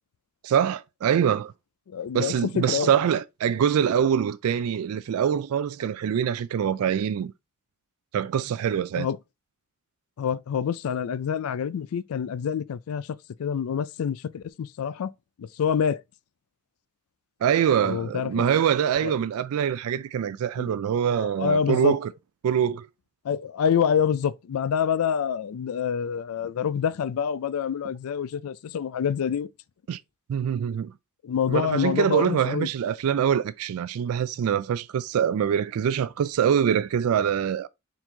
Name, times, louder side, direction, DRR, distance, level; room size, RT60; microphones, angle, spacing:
voice 1, 0.4-1.5 2.1-7.3 8.1-9.1 17.4-22.1 22.4-22.9 29.9-30.0 30.3-30.9 31.5-37.7, right 8 dB, 85° right, 0.3 m, -24 dB
voice 2, 1.9-2.9 9.0-9.2 10.2-15.1 15.4-16.0 17.8-18.4 19.0-19.1 20.6-20.7 21.1-21.9 23.2-29.5 31.2-32.7, left 7 dB, 80° left, 0.4 m, -27 dB
4.5 x 3.9 x 2.8 m
head